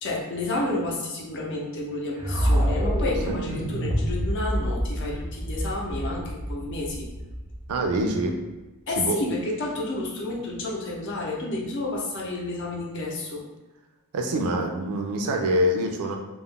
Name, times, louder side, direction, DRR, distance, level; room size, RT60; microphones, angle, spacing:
voice 1, 0.0-7.1 8.9-13.4, left 2 dB, 55° left, -2 dB, 0.6 m, -30 dB
sucked into classroom, 2.2-8.3, equal, 10° right, 0.5 m, -27 dB
voice 2, 7.7-8.4 9.0-9.2 14.1-16.1, right 1 dB, 80° right, 3 dB, 0.4 m, -25 dB
2.3 x 2.0 x 3.5 m, 1.1 s
head